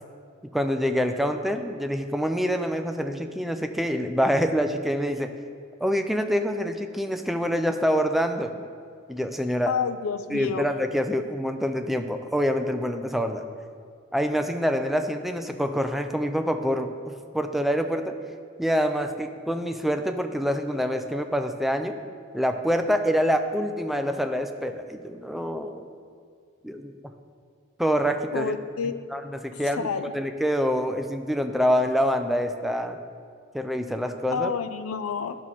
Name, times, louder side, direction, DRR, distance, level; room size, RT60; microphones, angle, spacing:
voice 1, 0.5-5.3 5.8-8.5 9.1-9.7 10.3-13.4 14.1-18.1 18.6-22.0 22.3-25.9 26.6-26.9 27.8-28.5 28.8-29.9 30.1-33.0 33.5-34.5, equal, ahead, 6 dB, 0.4 m, -26 dB
voice 2, 9.7-10.7 28.3-29.0 29.5-30.1 34.3-35.4, left 6 dB, 85° left, 11 dB, 0.5 m, -29 dB
10.5 x 6.2 x 4.2 m, 2.2 s
head